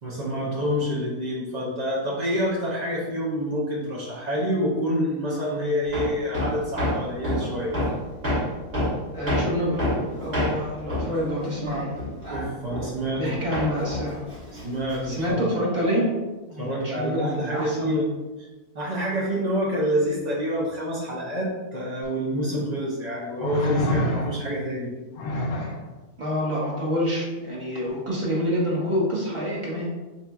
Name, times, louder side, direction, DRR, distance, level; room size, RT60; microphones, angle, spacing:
voice 1, 0.0-7.7 12.3-13.4 14.5-15.5 16.6-18.0 18.4-18.5 18.7-24.9, equal, 70° right, -5 dB, 0.4 m, -27 dB
Hammer, 5.9-13.3 13.5-15.3, left 1 dB, 45° right, 1.1 m, -28 dB
voice 2, 9.1-9.8 10.2-11.9 13.2-14.2 15.0-16.1 16.5-18.0 26.2-29.9, equal, 25° right, -5 dB, 0.8 m, -27 dB
sound 1, 22.0-22.1 23.4-24.6 25.1-25.8 27.7-27.9, left 1 dB, 70° left, 0.9 m, -26 dB
4.1 x 2.9 x 2.3 m, 1.2 s
omnidirectional pair, 1.5 m